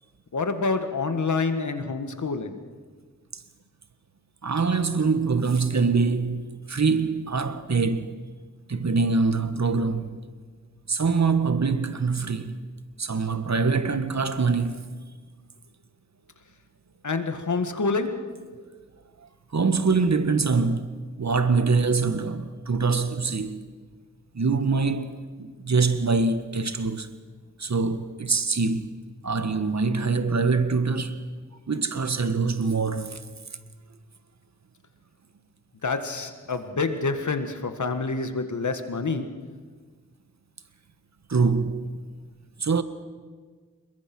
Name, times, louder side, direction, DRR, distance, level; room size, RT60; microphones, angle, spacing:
voice 1, 0.3-2.7 17.0-18.4 35.8-39.5, left 4 dB, 75° left, 1.9 m, -27 dB
voice 2, 4.4-8.2 8.7-10.2 10.9-12.6 13.0-14.9 19.5-23.6 24.3-27.1 27.6-28.9 29.2-31.2 31.7-33.2 41.3-42.0 42.6-42.8, right 4 dB, 65° right, 1.6 m, -24 dB
28.0 x 22.0 x 6.2 m
cardioid pair, 45°, 30 cm